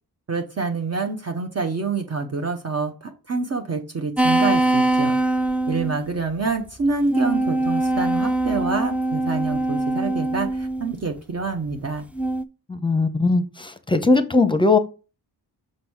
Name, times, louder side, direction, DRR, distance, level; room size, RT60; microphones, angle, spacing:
voice 1, 0.3-5.1 5.7-12.0, right 4 dB, 40° right, 4 dB, 0.8 m, -27 dB
sound 1, 4.2-6.0 6.8-10.9 12.1-12.4, right 2 dB, 5° right, 0.3 m, -22 dB
voice 2, 12.7-14.8, left 3 dB, 10° left, 9 dB, 0.7 m, -19 dB
6.2 x 4.0 x 4.6 m, 0.32 s
wide cardioid pair, 115°, 40 cm